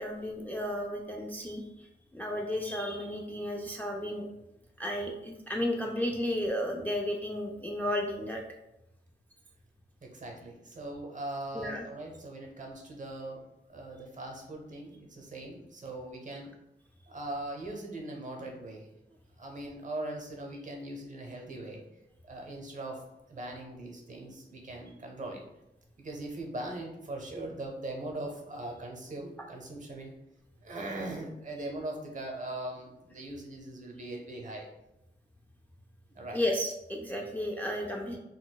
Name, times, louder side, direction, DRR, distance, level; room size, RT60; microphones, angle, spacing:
voice 1, 0.0-1.9 2.1-4.3 4.8-8.4 11.5-11.8 36.3-38.2, left 1 dB, 10° left, 0 dB, 0.3 m, -33 dB
voice 2, 10.0-13.4 13.7-16.5 17.1-18.9 19.4-21.8 22.2-23.0 23.3-25.4 26.0-30.1 30.6-34.7 36.1-36.4, right 2 dB, 40° right, 1 dB, 0.7 m, -40 dB
3.9 x 2.2 x 2.2 m, 0.88 s
wide cardioid pair, 100°, 19 cm